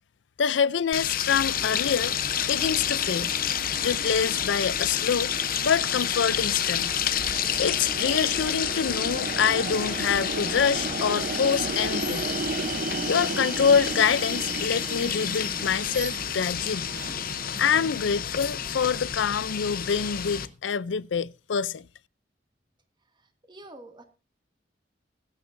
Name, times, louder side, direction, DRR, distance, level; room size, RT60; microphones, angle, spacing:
voice 1, 0.4-2.1 2.5-3.3 3.8-5.3 5.6-6.9 7.6-12.3 13.1-16.9 17.6-21.9, left 6 dB, 85° left, 0.5 m, -26 dB
sound 1, 0.9-20.5, left 9 dB, 55° left, 0.8 m, -29 dB
sound 2, 1.2-18.7, right 3 dB, 50° right, 0.8 m, -36 dB
voice 2, 23.1-24.0, right 1 dB, 25° right, 2.1 m, -48 dB
24.0 x 9.1 x 2.6 m
head